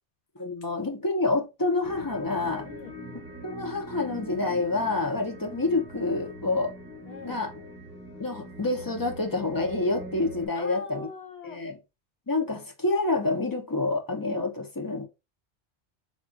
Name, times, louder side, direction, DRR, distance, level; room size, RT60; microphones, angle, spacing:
voice 1, 0.4-2.7 3.4-6.7 7.2-7.5 8.2-11.1 11.4-11.8 12.3-15.0, left 3 dB, 25° left, 0.5 m, -28 dB
sound 1, 1.8-10.5, equal, 10° right, 1.0 m, -42 dB
voice 2, 2.6-3.0 7.0-7.4 10.5-11.6, left 3 dB, 65° left, 1.2 m, -41 dB
3.6 x 2.3 x 3.7 m
omnidirectional pair, 1.2 m